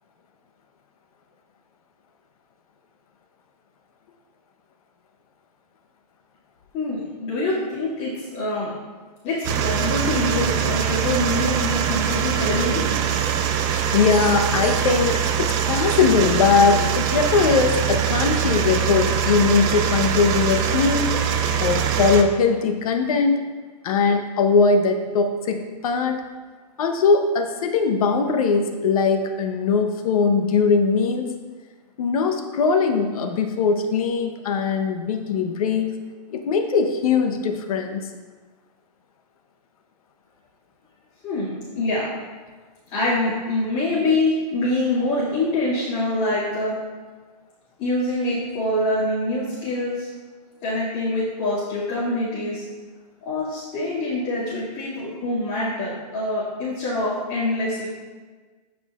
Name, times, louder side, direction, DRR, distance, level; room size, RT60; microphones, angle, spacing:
voice 1, 6.7-8.7 9.2-12.9 41.2-42.1 42.9-46.8 47.8-50.1 50.6-52.6 53.2-57.9, left 2 dB, 30° left, -11 dB, 2.4 m, -25 dB
sound 1, 9.4-22.2, right 8 dB, 20° right, 0.3 m, -23 dB
voice 2, 13.9-21.1 21.6-23.4 23.8-26.2 26.8-31.3 32.0-35.9 36.3-38.1, left 5 dB, 60° left, 5 dB, 1.0 m, -20 dB
13.5 x 4.9 x 2.5 m, 1.4 s
hypercardioid pair, 150°, 21 cm